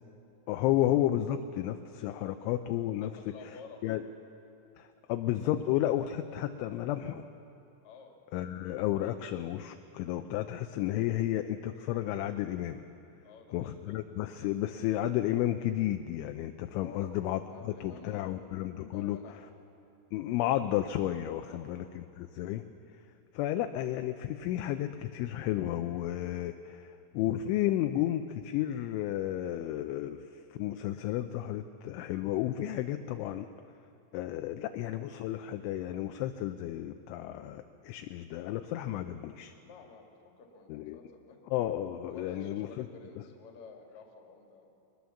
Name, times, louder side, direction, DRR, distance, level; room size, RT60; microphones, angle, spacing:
voice 1, 0.5-3.1 3.8-4.0 4.8-7.3 8.3-12.8 13.5-19.2 20.1-22.6 23.3-30.2 30.6-33.5 34.1-39.5 40.7-41.0 41.5-42.9, left 13 dB, 85° left, 8 dB, 2.8 m, -32 dB
voice 2, 3.0-4.0 7.8-8.2 13.2-14.0 16.8-17.2 17.5-18.6 18.9-19.5 21.5-21.7 39.6-41.4 42.1-44.7, left 5 dB, 45° left, 2 dB, 2.7 m, -51 dB
22.0 x 20.0 x 7.1 m, 2.8 s
omnidirectional pair, 6.0 m